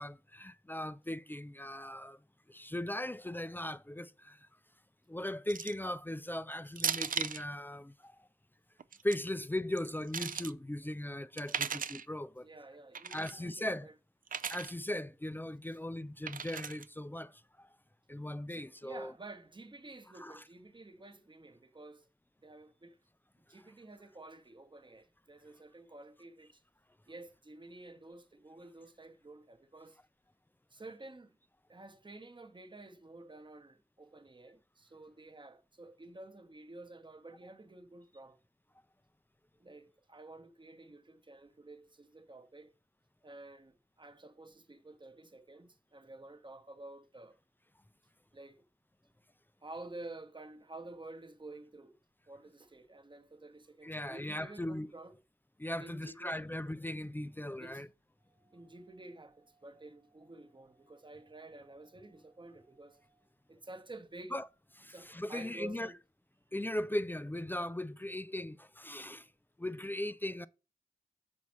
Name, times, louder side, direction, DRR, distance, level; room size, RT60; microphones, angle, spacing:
voice 1, 0.0-2.2 2.5-4.4 5.1-8.1 9.0-12.5 13.1-13.9 14.5-17.7 18.1-19.1 20.2-20.4 53.8-54.9 55.6-57.9 64.3-64.4 64.8-65.9 66.5-69.3 69.6-70.5, left 1 dB, 15° left, 0.3 m, -38 dB
sound 1, 5.5-5.9 6.8-7.4 8.8-9.2 9.8-10.5 11.4-12.0 12.9-13.3 14.3-14.7 16.3-16.8, right 7 dB, 70° right, 0.4 m, -37 dB
voice 2, 12.4-13.9 18.5-22.1 22.4-23.0 23.4-26.6 27.1-30.0 30.7-31.4 31.7-38.4 39.6-42.7 43.2-47.4 48.3-48.6 49.6-52.0 52.3-55.2 55.8-56.5 57.6-57.8 58.3-64.4 64.9-66.0, right 2 dB, 35° right, 0.9 m, -51 dB
5.6 x 4.2 x 6.1 m
wide cardioid pair, 60°, 15 cm